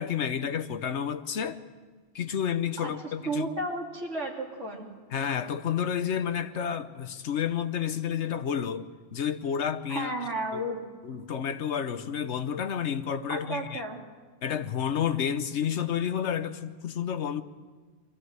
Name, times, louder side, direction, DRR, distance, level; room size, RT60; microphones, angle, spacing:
voice 1, 0.0-1.6 2.1-3.5 5.1-8.9 9.1-10.1 11.0-13.8 14.4-17.4, left 8 dB, 70° left, 1.2 m, -30 dB
voice 2, 3.2-4.9 9.9-10.8 13.3-14.0, right 2 dB, 70° right, 3.4 m, -33 dB
23.5 x 15.0 x 8.0 m
omnidirectional pair, 1.3 m